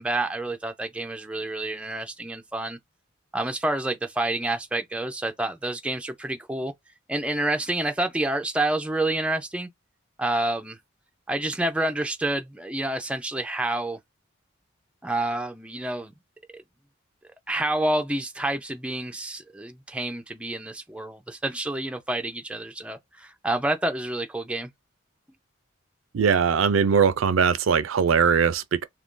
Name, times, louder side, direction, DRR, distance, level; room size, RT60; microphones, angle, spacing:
voice 1, 0.0-2.8 3.3-6.7 7.1-9.7 10.2-10.8 11.3-14.0 15.0-16.1 16.5-16.6 17.5-24.7, right 1 dB, 5° right, 0.3 m, -28 dB
voice 2, 26.1-28.9, right 6 dB, 75° right, 0.4 m, -21 dB
2.7 x 2.6 x 3.6 m
head